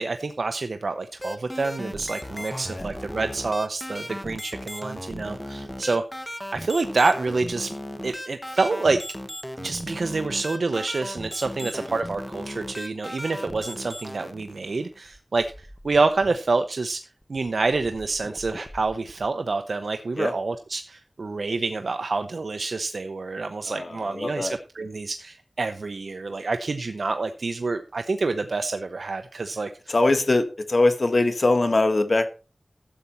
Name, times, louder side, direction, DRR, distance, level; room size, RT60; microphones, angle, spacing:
voice 1, 0.0-6.0 6.5-7.7 8.0-9.0 9.6-17.0 17.3-29.9, right 3 dB, 85° right, 8 dB, 0.7 m, -27 dB
sound 1, 1.2-16.5 17.2-19.3, equal, 5° left, 1.1 m, -37 dB
voice 2, 2.3-2.9 11.6-11.7 20.2-20.3 23.7-24.5 29.9-32.3, left 2 dB, 60° left, 8 dB, 1.5 m, -22 dB
12.5 x 8.2 x 4.3 m, 0.34 s
wide cardioid pair, 70°, 0 cm